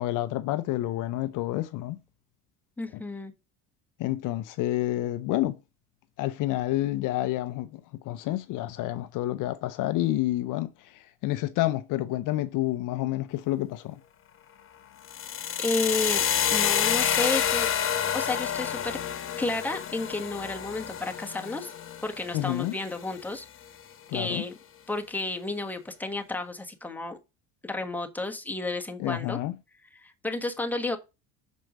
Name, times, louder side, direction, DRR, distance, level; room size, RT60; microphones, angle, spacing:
voice 1, 0.0-2.0 2.9-3.0 4.0-5.6 6.2-14.0 22.3-22.8 24.1-24.4 29.0-29.6, left 15 dB, 60° left, 0.6 m, -29 dB
voice 2, 2.8-3.3 15.6-16.2 16.5-17.7 18.1-19.0 19.4-21.7 22.0-23.4 24.1-24.5 24.9-27.2 27.6-29.4 30.0-31.0, left 2 dB, 5° left, 1.3 m, -31 dB
sound 1, 15.0-23.1, left 9 dB, 35° left, 1.0 m, -28 dB
6.3 x 4.4 x 5.2 m
supercardioid pair, 100°, 35 cm